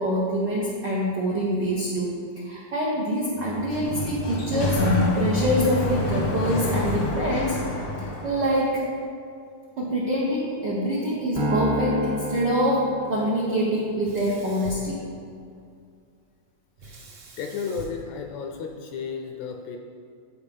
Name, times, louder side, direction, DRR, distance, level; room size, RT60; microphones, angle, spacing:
voice 1, 0.0-4.8 5.1-7.7 8.0-8.9 9.8-15.0, equal, 80° right, -4 dB, 0.9 m, -25 dB
Sliding door, 3.4-8.6, left 2 dB, 60° left, 1.0 m, -27 dB
Piano, 11.3-13.8, equal, 35° right, 0.8 m, -29 dB
Sink (filling or washing), 14.0-15.6 16.8-19.0, right 2 dB, 65° right, 1.3 m, -44 dB
voice 2, 17.4-19.8, left 5 dB, 80° left, 3 dB, 1.7 m, -33 dB
13.5 x 4.8 x 3.5 m, 2.3 s
omnidirectional pair, 3.5 m